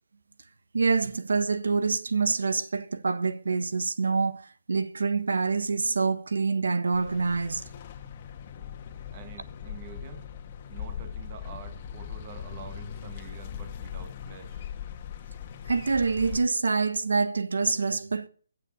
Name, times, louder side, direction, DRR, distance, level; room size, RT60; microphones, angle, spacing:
voice 1, 0.7-7.6 15.7-18.3, right 4 dB, 90° right, 1.3 m, -26 dB
sound 1, 6.9-16.4, left 8 dB, 30° left, 1.6 m, -40 dB
voice 2, 9.1-10.3 10.7-14.6, right 8 dB, 25° right, 1.6 m, -47 dB
15.5 x 7.6 x 8.3 m
hypercardioid pair, 170°, 0 cm